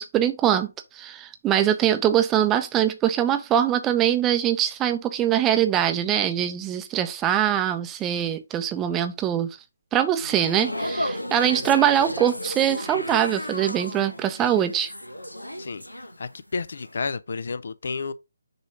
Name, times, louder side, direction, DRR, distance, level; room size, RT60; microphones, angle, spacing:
voice 1, 0.0-9.6 9.9-14.9, right 10 dB, 15° right, 0.6 m, -23 dB
sound 1, 10.2-16.4 16.7-17.0, left 1 dB, 90° left, 1.0 m, -33 dB
voice 2, 16.2-18.1, left 4 dB, 55° left, 0.5 m, -31 dB
6.6 x 3.1 x 4.9 m
figure-of-eight pair, 145°, 0 cm